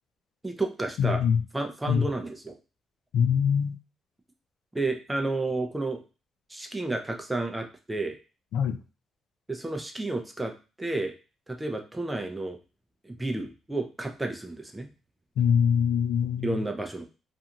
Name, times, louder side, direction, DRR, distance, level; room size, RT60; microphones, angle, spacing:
voice 1, 0.4-1.2 1.5-2.5 4.7-6.0 6.5-8.2 9.5-10.5 10.8-11.1 11.5-12.6 13.1-14.9 16.4-17.1, right 2 dB, 10° right, 4 dB, 0.5 m, -31 dB
voice 2, 1.0-1.4 1.9-2.1 3.1-3.7 8.5-8.8 15.4-16.6, left 7 dB, 80° left, 8 dB, 0.3 m, -23 dB
2.5 x 2.3 x 2.8 m, 0.31 s
cardioid pair, 90°, 0 cm